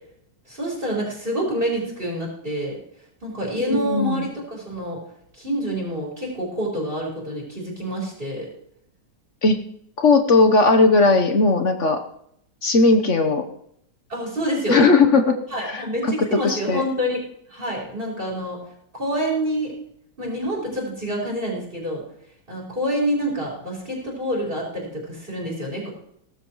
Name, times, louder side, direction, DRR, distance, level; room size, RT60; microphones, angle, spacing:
voice 1, 0.5-2.8 3.2-5.0 5.3-8.5 14.1-14.9 15.5-17.2 17.5-18.6 18.9-19.7 20.2-22.0 22.5-25.9, equal, 30° right, -5 dB, 5.1 m, -27 dB
voice 2, 3.6-4.3 9.4-9.6 10.0-12.0 12.6-13.4 14.7-16.8, left 3 dB, 50° left, 6 dB, 1.2 m, -18 dB
18.0 x 14.5 x 3.1 m, 0.74 s
omnidirectional pair, 2.0 m